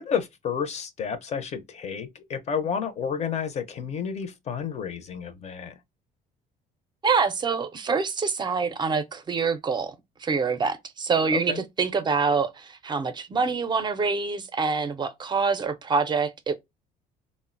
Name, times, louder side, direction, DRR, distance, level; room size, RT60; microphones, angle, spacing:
voice 1, 0.0-5.7 11.3-11.6, left 7 dB, 40° left, 0.5 m, -31 dB
voice 2, 7.0-9.9 10.2-16.5, right 5 dB, 25° right, 0.5 m, -26 dB
3.7 x 2.1 x 2.4 m
cardioid pair, 110°, 17 cm